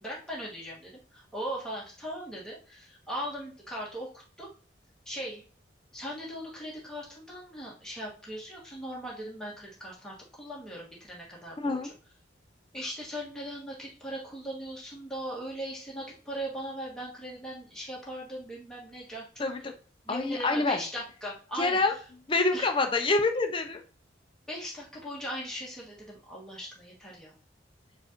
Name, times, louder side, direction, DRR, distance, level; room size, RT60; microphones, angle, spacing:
voice 1, 0.0-4.5 5.0-5.4 5.9-11.9 12.7-19.4 20.0-21.8 22.5-22.7 24.5-27.3, equal, 5° left, -5 dB, 1.5 m, -39 dB
voice 2, 11.6-11.9 19.4-19.7 20.1-20.8 21.5-21.9 22.3-23.8, left 3 dB, 25° left, 6 dB, 0.5 m, -26 dB
4.6 x 2.5 x 4.4 m, 0.40 s
head